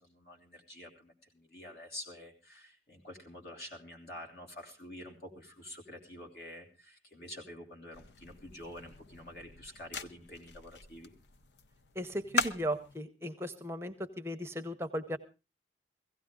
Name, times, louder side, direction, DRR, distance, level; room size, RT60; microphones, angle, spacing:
voice 1, 0.0-11.1, left 1 dB, 65° left, 1 dB, 3.1 m, -48 dB
sound 1, 7.9-13.0, left 4 dB, 85° left, 0.7 m, -40 dB
voice 2, 12.0-15.2, equal, 15° right, 7 dB, 0.7 m, -36 dB
16.5 x 16.0 x 3.7 m, 0.29 s
head